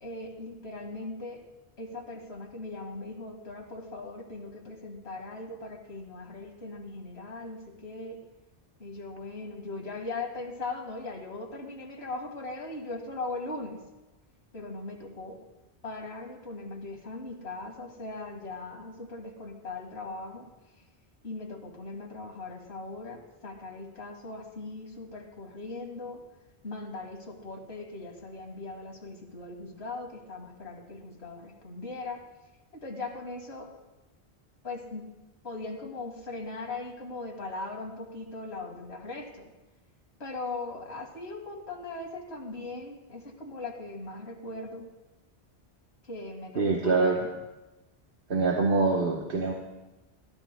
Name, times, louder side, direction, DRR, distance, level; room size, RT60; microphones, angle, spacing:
voice 1, 0.0-1.4 1.8-8.2 8.8-13.8 14.5-15.4 15.8-20.5 21.2-26.2 26.6-32.2 32.7-33.7 34.6-35.1 35.4-39.5 40.2-44.9 46.0-47.2, left 3 dB, 70° left, 0 dB, 2.2 m, -39 dB
voice 2, 46.6-47.3 48.3-49.5, right 3 dB, 55° right, -1 dB, 1.2 m, -25 dB
21.0 x 12.5 x 2.2 m, 1.1 s
omnidirectional pair, 1.1 m